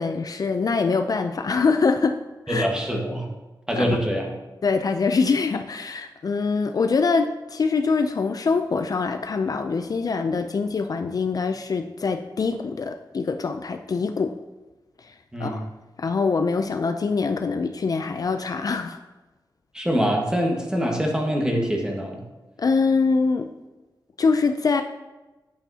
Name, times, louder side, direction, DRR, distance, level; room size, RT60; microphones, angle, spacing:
voice 1, 0.0-2.2 2.5-2.7 3.8-4.0 4.6-14.3 15.0-15.1 15.4-15.7 16.0-19.0 22.6-23.5 24.2-24.8, left 4 dB, 50° left, 7 dB, 0.4 m, -24 dB
voice 2, 2.5-3.3 3.7-4.3 15.3-15.6 19.7-22.2, equal, 10° right, 0 dB, 1.5 m, -24 dB
8.8 x 8.7 x 2.8 m, 1.1 s
wide cardioid pair, 125°, 8 cm